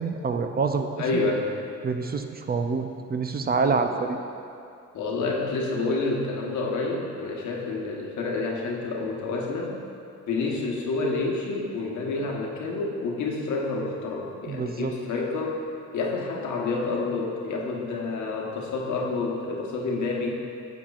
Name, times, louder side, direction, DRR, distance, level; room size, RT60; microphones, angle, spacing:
voice 1, 0.0-1.2 1.8-4.2 14.5-14.9, right 4 dB, 30° right, 6 dB, 0.4 m, -27 dB
voice 2, 1.0-1.5 3.6-3.8 4.9-9.8 10.3-15.6 15.9-20.3, left 3 dB, 75° left, -1 dB, 1.2 m, -28 dB
9.3 x 7.4 x 2.4 m, 2.6 s
cardioid pair, 90°, 30 cm